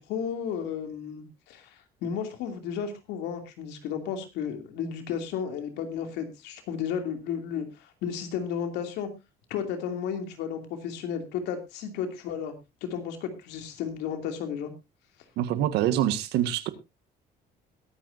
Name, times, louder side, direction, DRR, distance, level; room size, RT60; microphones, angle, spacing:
voice 1, 0.0-9.1 9.5-12.5 12.8-14.7, left 7 dB, 90° left, 6 dB, 2.7 m, -33 dB
voice 2, 15.4-16.7, right 11 dB, 85° right, 12 dB, 1.6 m, -25 dB
22.0 x 9.3 x 2.7 m, 0.24 s
cardioid pair, 110°, 17 cm